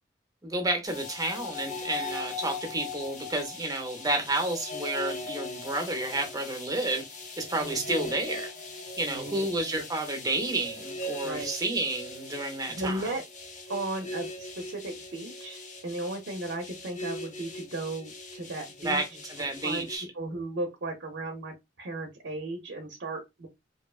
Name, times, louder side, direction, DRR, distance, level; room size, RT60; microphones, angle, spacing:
voice 1, 0.4-7.0 7.4-8.5 9.0-13.0 18.8-20.1, right 2 dB, 20° right, 0.6 m, -30 dB
sound 1, 0.9-20.0, left 2 dB, 45° left, 0.5 m, -40 dB
voice 2, 7.6-8.1 9.1-9.5 11.2-11.5 12.7-13.2 13.7-19.0 19.4-19.9 20.1-23.5, right 2 dB, 70° right, 0.5 m, -36 dB
2.6 x 2.1 x 2.3 m
head